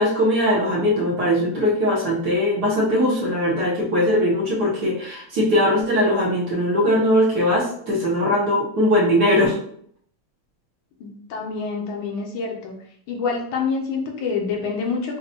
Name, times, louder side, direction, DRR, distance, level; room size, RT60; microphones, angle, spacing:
voice 1, 0.0-9.6, left 1 dB, 55° right, -5 dB, 1.3 m, -20 dB
voice 2, 11.0-12.7 13.1-15.2, left 4 dB, 75° left, 1 dB, 1.5 m, -27 dB
5.3 x 2.2 x 2.8 m, 0.63 s
omnidirectional pair, 2.4 m